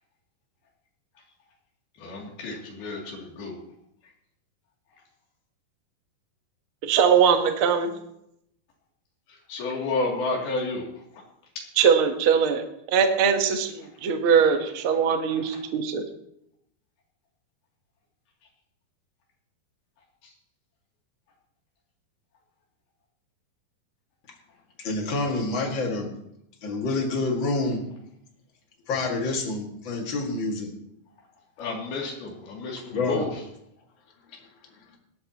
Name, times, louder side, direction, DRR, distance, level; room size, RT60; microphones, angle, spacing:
voice 1, 2.0-3.6 9.5-10.8 15.4-15.5 31.6-33.3, left 3 dB, 75° left, -2 dB, 4.7 m, -31 dB
voice 2, 6.8-7.9 11.8-12.6 12.9-16.0, right 7 dB, 75° right, 5 dB, 1.2 m, -21 dB
voice 3, 24.8-26.1 26.6-27.9 28.9-30.7 32.9-33.3 34.3-34.4 34.9-35.0, left 3 dB, 40° left, 1 dB, 2.1 m, -27 dB
18.5 x 13.0 x 3.0 m, 0.77 s
omnidirectional pair, 4.5 m